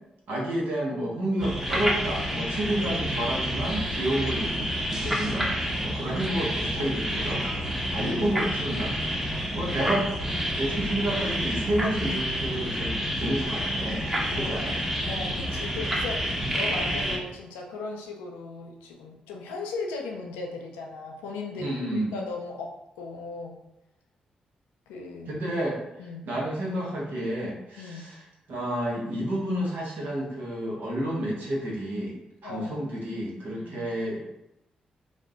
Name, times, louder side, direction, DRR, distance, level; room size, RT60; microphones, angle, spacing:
voice 1, 0.3-7.4 7.9-8.9 9.5-10.1 10.5-14.1 14.3-14.8 21.5-22.2 25.3-25.8 26.3-28.2 28.5-32.2 32.4-34.2, right 1 dB, 70° right, -2 dB, 0.8 m, -30 dB
sound 1, 1.4-17.2, equal, 10° right, 0.8 m, -29 dB
voice 2, 4.1-4.5 14.3-14.7 15.1-23.6 24.9-25.4 26.0-26.3 27.8-28.2 32.4-32.9 33.6-33.9, left 3 dB, 90° left, 1 dB, 0.4 m, -37 dB
2.5 x 2.1 x 3.5 m, 0.86 s
hypercardioid pair, 40°, 3 cm